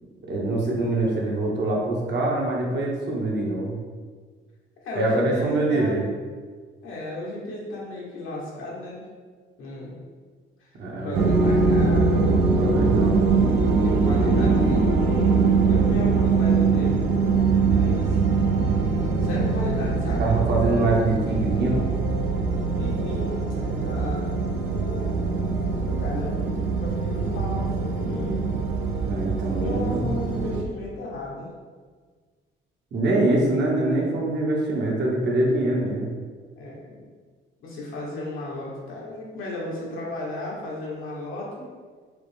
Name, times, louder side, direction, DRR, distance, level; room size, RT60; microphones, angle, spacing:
voice 1, 0.2-3.8 5.0-6.0 10.8-11.3 12.6-13.3 20.2-21.8 29.0-30.1 32.9-36.1, right 2 dB, 60° right, -2 dB, 1.0 m, -24 dB
voice 2, 4.8-6.0 6.8-9.1 9.6-10.0 10.6-12.3 13.8-17.0 17.7-18.2 19.1-20.2 22.7-25.4 25.7-28.5 29.5-31.5 36.6-37.1 37.6-41.6, left 1 dB, 85° left, -4 dB, 1.1 m, -34 dB
sound 1, 11.1-30.6, right 4 dB, 85° right, 0.5 m, -22 dB
4.8 x 2.0 x 3.3 m, 1.5 s
cardioid pair, 95°, 20 cm